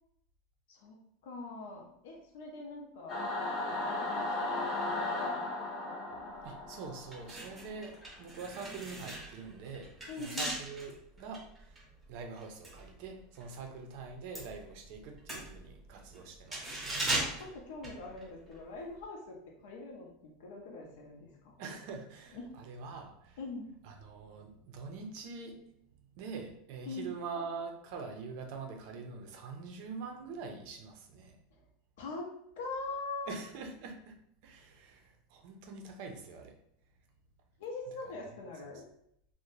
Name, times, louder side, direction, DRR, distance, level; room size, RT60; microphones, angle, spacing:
voice 1, 1.2-3.2 3.5-5.4 10.1-10.5 17.3-19.4 19.6-21.5 22.3-22.4 23.4-23.7 26.9-27.1 32.0-32.3 32.5-33.3 37.6-38.8, left 3 dB, 80° left, 0 dB, 0.5 m, -43 dB
Singing / Musical instrument, 3.1-7.7, left 2 dB, 30° left, 0.6 m, -36 dB
sound 1, 6.4-6.6 7.0-13.6 13.9-18.6 18.9-19.0, right 1 dB, 10° right, 0.6 m, -39 dB
voice 2, 6.4-11.8 12.1-16.8 21.6-23.4 23.8-25.6 26.2-31.4 33.3-34.2 34.4-36.6, right 4 dB, 55° right, 3 dB, 0.5 m, -44 dB
2.5 x 2.0 x 3.0 m, 0.74 s
supercardioid pair, 165°, 0 cm